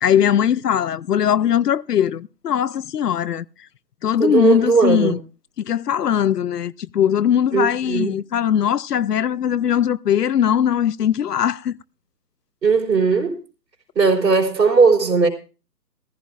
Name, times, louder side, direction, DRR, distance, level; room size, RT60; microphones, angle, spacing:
voice 1, 0.0-3.4 4.0-5.2 5.6-11.8, left 9 dB, 70° left, 0.6 m, -20 dB
voice 2, 4.2-5.2 7.5-8.1 12.6-13.4 13.9-15.3, right 4 dB, 75° right, 3.7 m, -17 dB
18.0 x 14.5 x 2.4 m
hypercardioid pair, 160°, 50 cm